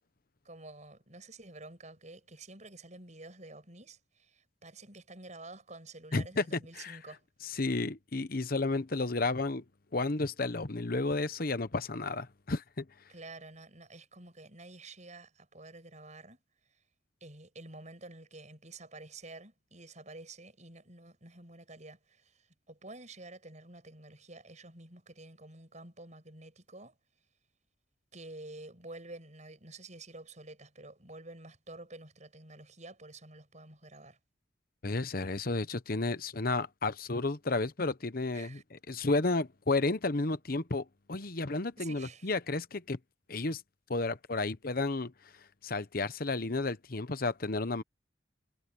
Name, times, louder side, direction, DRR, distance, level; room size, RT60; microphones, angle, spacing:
voice 1, 0.4-7.2 13.1-16.4 17.2-27.0 28.1-34.2 38.3-38.6 41.8-42.3, right 2 dB, 40° right, 7.7 m, -49 dB
voice 2, 6.1-7.0 7.4-9.6 9.9-12.8 34.8-43.0 43.3-43.6 43.9-45.1 45.6-47.8, left 3 dB, 50° left, 1.0 m, -32 dB
head